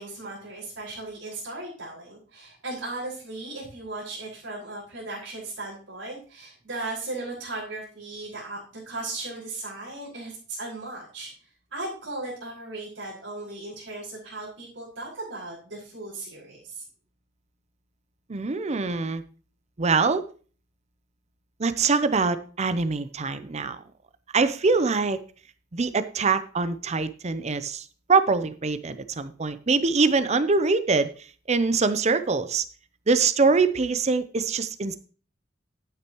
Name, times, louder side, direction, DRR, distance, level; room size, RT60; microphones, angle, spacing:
voice 1, 0.0-11.3 11.7-16.8, right 2 dB, 85° right, -6 dB, 5.3 m, -37 dB
voice 2, 18.3-19.2 19.8-20.3 21.6-23.8 24.3-25.2 25.7-31.1 31.5-32.6 33.1-35.0, right 4 dB, 35° right, 12 dB, 0.6 m, -24 dB
12.0 x 9.2 x 3.1 m, 0.39 s
head